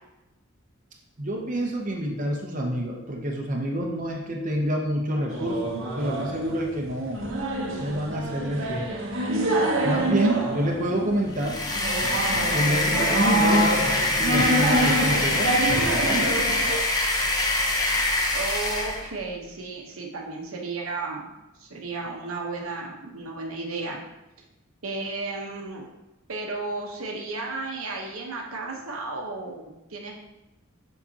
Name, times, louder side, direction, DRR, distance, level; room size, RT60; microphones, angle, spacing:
voice 1, 1.2-7.2 7.8-8.9 9.8-11.6 12.0-13.7 14.2-16.4, equal, 40° right, 0 dB, 0.8 m, -28 dB
sound 1, 5.3-16.8, right 1 dB, 65° right, 1.0 m, -26 dB
sound 2, 11.3-19.1, left 2 dB, 20° left, 0.9 m, -25 dB
voice 2, 18.3-21.2 21.6-24.0 24.8-25.9 26.3-30.1, right 3 dB, 90° right, -1 dB, 1.1 m, -33 dB
7.0 x 5.8 x 2.9 m, 0.97 s
head